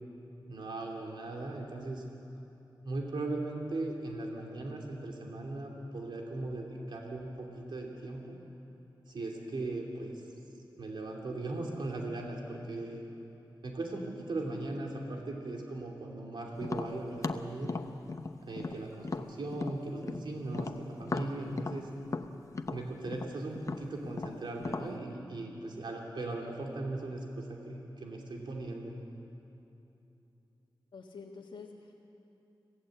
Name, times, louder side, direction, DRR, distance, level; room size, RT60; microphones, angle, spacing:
voice 1, 0.5-2.0 2.8-8.4 9.1-10.2 10.8-13.0 13.6-17.7 18.4-21.9 22.7-28.9, right 2 dB, 70° right, 0 dB, 3.0 m, -38 dB
Tap, 16.6-20.2 20.5-24.9, left 3 dB, 40° left, 0.9 m, -37 dB
voice 2, 30.9-31.9, left 4 dB, 85° left, -3 dB, 1.7 m, -47 dB
26.0 x 17.0 x 8.0 m, 2.9 s
wide cardioid pair, 115°, 8 cm